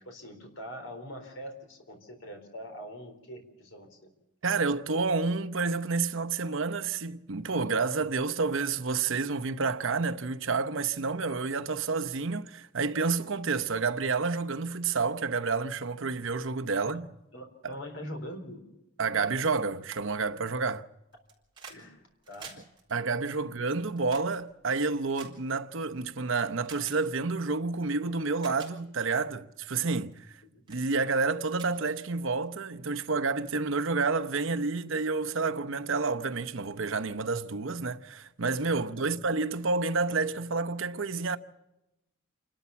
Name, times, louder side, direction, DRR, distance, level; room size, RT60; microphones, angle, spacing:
voice 1, 0.0-4.1 16.7-17.0 17.3-18.6 21.7-22.6 30.5-30.6 39.0-39.1, equal, 70° left, 4.0 m, -43 dB
voice 2, 4.4-17.0 17.6-17.7 19.0-20.9 22.9-30.3 30.7-41.4, right 4 dB, 70° right, 0.9 m, -29 dB
sound 1, 21.1-21.8 22.1-26.0 26.6-27.0 27.8-27.9 28.3-28.7 29.3-29.6 30.1-30.4 30.7-30.8 31.2-31.3 31.5-32.5 33.6-33.7, right 6 dB, 20° right, 4.1 m, -49 dB
29.0 x 13.0 x 7.0 m
head